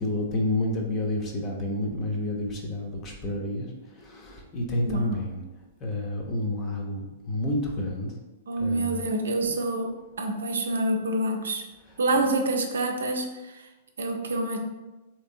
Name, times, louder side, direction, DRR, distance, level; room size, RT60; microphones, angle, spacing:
voice 1, 0.0-5.4 5.8-8.1 8.6-9.0 9.4-9.5, left 1 dB, 30° left, 1 dB, 0.7 m, -30 dB
voice 2, 4.8-5.2 8.5-11.7 12.0-13.7 14.0-14.6, right 2 dB, 70° right, 3 dB, 0.4 m, -27 dB
3.3 x 2.9 x 2.6 m, 1.1 s
figure-of-eight pair, 105°, 0 cm